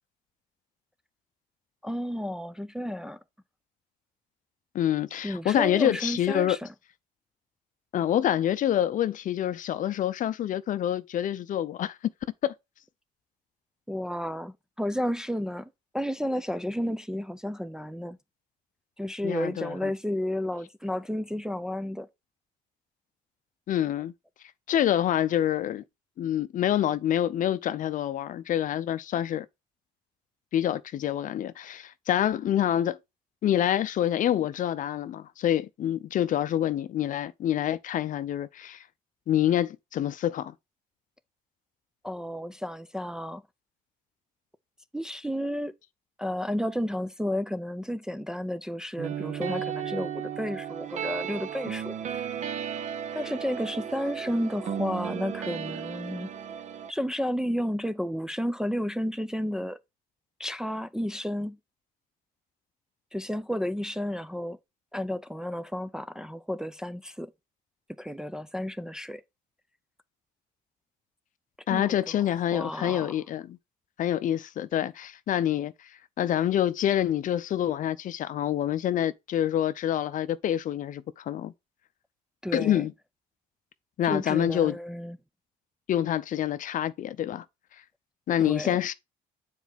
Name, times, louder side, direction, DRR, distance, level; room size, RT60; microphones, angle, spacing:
voice 1, 1.8-3.2 5.2-6.7 13.9-18.2 19.0-22.1 42.0-43.4 44.9-45.7 46.2-52.3 53.1-56.3 56.9-59.8 60.4-61.6 63.1-64.6 64.9-67.3 68.0-69.2 71.7-72.1 72.5-73.1 82.4-82.9 84.0-85.2 88.4-88.8, equal, 5° right, 0.4 m, -32 dB
voice 2, 4.7-6.6 7.9-12.0 12.4-12.5 19.2-19.9 23.7-24.1 24.7-25.8 26.2-29.5 30.5-33.0 33.4-38.8 39.3-40.5 71.7-73.6 74.0-75.7 76.2-81.5 82.5-82.9 84.0-84.8 85.9-87.4 88.3-88.9, left 11 dB, 50° left, 0.5 m, -27 dB
sound 1, 49.0-56.9, right 8 dB, 45° right, 0.7 m, -34 dB
7.2 x 4.5 x 3.5 m
cardioid pair, 110°, 17 cm